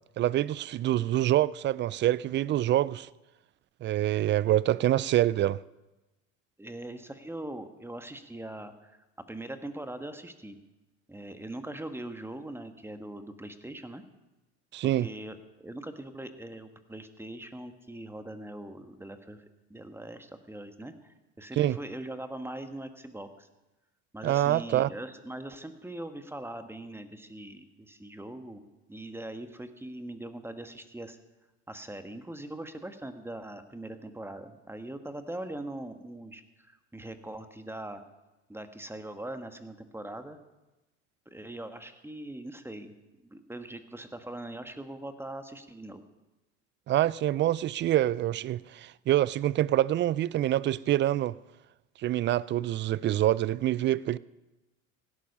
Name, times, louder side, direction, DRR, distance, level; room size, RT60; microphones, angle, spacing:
voice 1, 0.2-3.1 3.8-5.6 14.7-15.1 21.6-21.8 24.2-24.9 46.9-51.4 52.0-54.2, right 13 dB, 30° right, 0.4 m, -26 dB
voice 2, 6.6-9.0 9.3-10.6 11.1-14.0 14.8-19.4 19.7-23.5 24.1-28.6 28.9-31.2 31.7-38.0 38.5-40.4 41.3-42.9 43.2-46.0, right 1 dB, 5° right, 1.3 m, -41 dB
16.5 x 12.0 x 5.4 m
hypercardioid pair, 85°, 37 cm